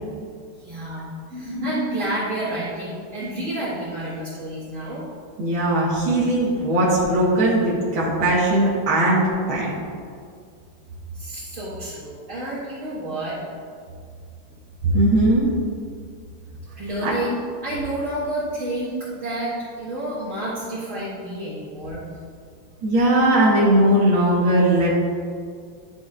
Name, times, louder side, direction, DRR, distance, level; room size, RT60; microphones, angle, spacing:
voice 1, 0.6-5.1 11.1-13.4 16.8-22.0, right 1 dB, 40° right, -9 dB, 1.8 m, -29 dB
voice 2, 5.4-9.7 14.9-15.5 17.0-17.1 22.8-24.9, right 1 dB, 80° right, -6 dB, 2.0 m, -19 dB
11.5 x 6.1 x 2.4 m, 2.2 s
omnidirectional pair, 2.2 m